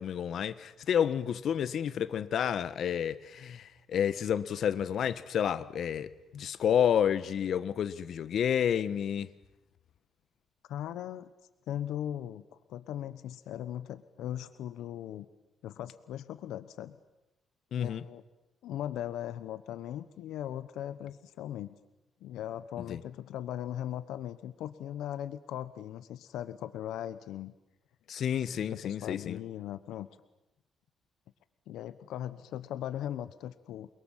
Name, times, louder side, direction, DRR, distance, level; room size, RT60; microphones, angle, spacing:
voice 1, 0.0-9.3 17.7-18.0 22.9-23.0 28.1-29.4, left 9 dB, 60° left, 1.4 m, -30 dB
voice 2, 10.7-11.3 11.7-12.4 12.7-15.3 15.6-17.0 17.8-18.2 18.6-21.7 22.2-27.5 28.6-30.1 31.7-33.9, left 11 dB, 85° left, 1.2 m, -39 dB
29.0 x 23.0 x 7.5 m
cardioid pair, 110°, 0 cm